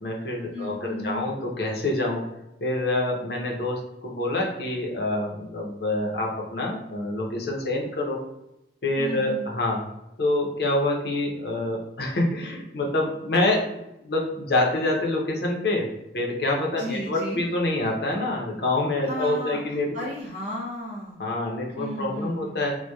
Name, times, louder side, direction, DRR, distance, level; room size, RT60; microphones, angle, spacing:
voice 1, 0.0-2.2 2.6-8.2 8.8-9.8 10.2-15.9 16.1-19.9 21.2-22.7, left 2 dB, 60° left, -1 dB, 0.5 m, -26 dB
voice 2, 0.5-1.3 9.0-9.5 16.7-17.5 19.0-21.2 21.8-22.6, equal, 40° right, -6 dB, 0.4 m, -34 dB
2.7 x 2.1 x 2.2 m, 0.88 s
head